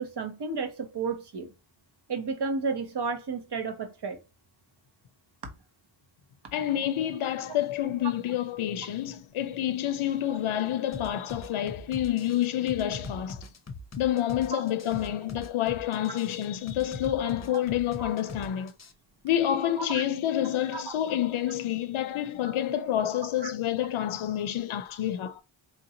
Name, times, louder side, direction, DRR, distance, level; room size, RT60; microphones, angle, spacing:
voice 1, 0.0-1.5 2.1-4.2 14.5-14.6 18.0-18.1 19.9-20.0 20.7-20.9 23.4-23.5, right 4 dB, 55° right, 0.9 m, -32 dB
voice 2, 6.5-13.5 14.0-18.7 19.2-25.4, left 11 dB, 75° left, 0.6 m, -28 dB
sound 1, 10.9-18.9, left 3 dB, 35° left, 0.6 m, -41 dB
4.4 x 2.6 x 2.8 m
wide cardioid pair, 85°, 50 cm